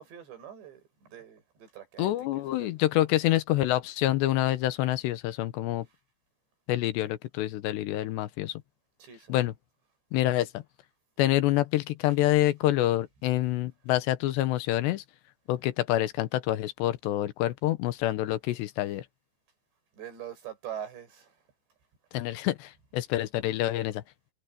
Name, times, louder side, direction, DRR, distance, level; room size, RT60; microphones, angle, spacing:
voice 1, 0.0-2.9 9.0-9.4 18.9-19.0 19.9-21.4, right 10 dB, 75° right, 8.6 m, -44 dB
voice 2, 2.0-5.9 6.7-8.6 9.3-9.5 10.1-10.6 11.2-15.0 15.5-19.1 22.1-24.0, left 14 dB, 80° left, 3.1 m, -27 dB
omnidirectional pair, 5.0 m